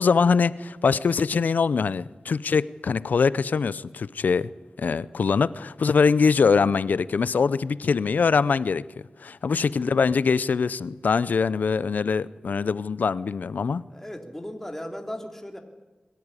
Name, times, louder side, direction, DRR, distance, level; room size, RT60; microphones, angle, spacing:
voice 1, 0.0-4.5 4.8-8.8 9.2-13.8, left 5 dB, 90° left, 19 dB, 0.6 m, -23 dB
voice 2, 9.7-10.0 13.9-15.6, equal, 10° left, 3 dB, 2.9 m, -37 dB
22.5 x 14.0 x 9.8 m, 1.3 s
wide cardioid pair, 60°, 3 cm